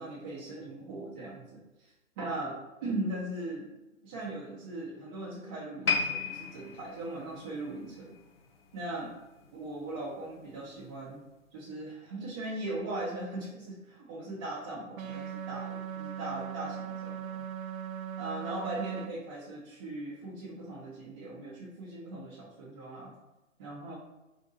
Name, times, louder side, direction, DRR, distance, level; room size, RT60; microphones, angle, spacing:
voice 1, 0.0-3.7 4.0-8.1 8.7-9.1 9.5-11.2 11.5-17.4 18.2-23.1 23.6-24.0, right 2 dB, 15° right, -8 dB, 0.6 m, -39 dB
sound 1, 5.8-9.1 9.4-9.7 10.4-10.5, left 4 dB, 45° left, 0.7 m, -34 dB
sound 2, 15.0-19.1, right 8 dB, 80° right, 0.7 m, -39 dB
4.0 x 2.6 x 3.7 m, 1.0 s
hypercardioid pair, 140°, 40 cm